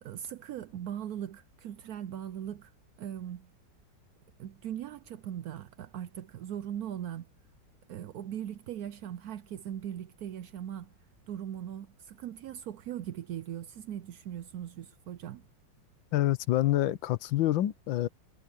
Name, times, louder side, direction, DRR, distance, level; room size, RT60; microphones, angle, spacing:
voice 1, 0.0-2.7 3.0-3.5 4.4-7.3 7.9-10.9 11.3-15.4, right 10 dB, 70° right, 0.9 m, -39 dB
voice 2, 16.1-18.1, left 14 dB, 85° left, 1.5 m, -27 dB
omnidirectional pair, 2.0 m